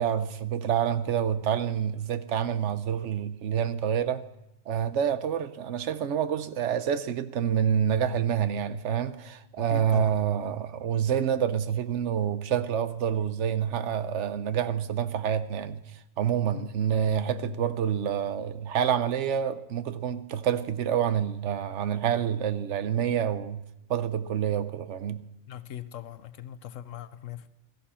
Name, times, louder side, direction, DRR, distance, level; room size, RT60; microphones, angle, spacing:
voice 1, 0.0-4.2 4.7-23.6 23.9-25.3, right 8 dB, 70° right, 1.0 m, -27 dB
voice 2, 9.7-10.2 16.5-16.7 25.5-27.5, left 11 dB, 80° left, 1.1 m, -40 dB
16.0 x 14.0 x 4.3 m
omnidirectional pair, 1.3 m